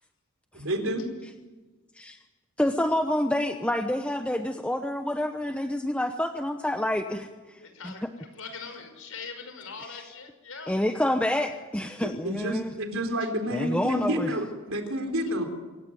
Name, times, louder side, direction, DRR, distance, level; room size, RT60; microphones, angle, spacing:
voice 1, 0.5-1.1 12.0-15.4, equal, 70° right, 5 dB, 4.0 m, -29 dB
voice 2, 2.6-7.9 10.7-12.7 13.5-14.3, left 1 dB, 5° left, 6 dB, 0.9 m, -28 dB
voice 3, 7.6-10.8, left 5 dB, 70° left, 7 dB, 5.5 m, -42 dB
26.5 x 16.0 x 9.4 m, 1.3 s
head